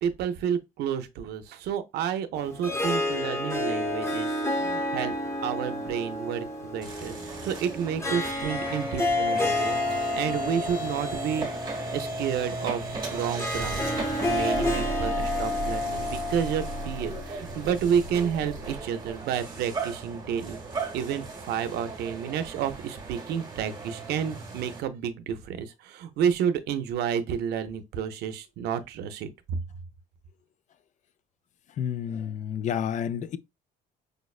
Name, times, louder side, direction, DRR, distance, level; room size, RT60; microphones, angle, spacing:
voice 1, 0.0-5.1 5.4-9.8 10.1-11.5 11.9-20.6 20.9-29.3, right 8 dB, 75° right, 0.6 m, -30 dB
Harp, 2.3-17.6, left 2 dB, 15° left, 0.9 m, -30 dB
sound 1, 6.8-24.8, right 3 dB, 25° right, 1.0 m, -36 dB
voice 2, 31.8-33.4, left 8 dB, 45° left, 0.4 m, -30 dB
5.0 x 2.0 x 2.3 m
cardioid pair, 110°, 17 cm